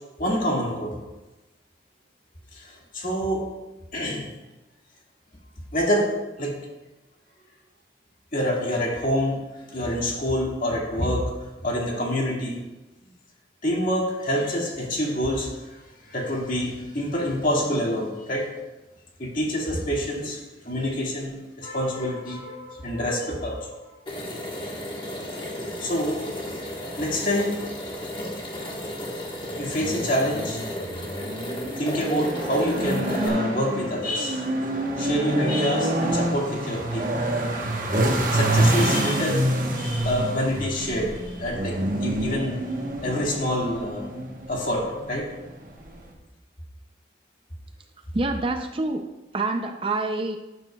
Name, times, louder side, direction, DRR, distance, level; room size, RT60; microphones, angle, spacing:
voice 1, 0.2-1.0 2.5-3.4 3.9-4.3 5.7-6.1 6.4-6.6 8.3-12.6 13.6-18.5 19.2-23.9 25.8-26.2 26.8-27.6 29.6-30.9 31.8-34.5 35.0-37.1 38.3-39.4 39.7-42.6 43.0-44.1 44.5-45.3, equal, 50° left, -2 dB, 2.0 m, -27 dB
sound 1, 24.1-33.3, left 1 dB, 25° left, 1.4 m, -34 dB
sound 2, 29.5-46.1, right 1 dB, 50° right, 1.1 m, -27 dB
voice 2, 48.1-49.1 49.3-50.4, right 2 dB, 30° right, 6 dB, 0.4 m, -26 dB
12.0 x 8.1 x 2.3 m, 1.1 s
head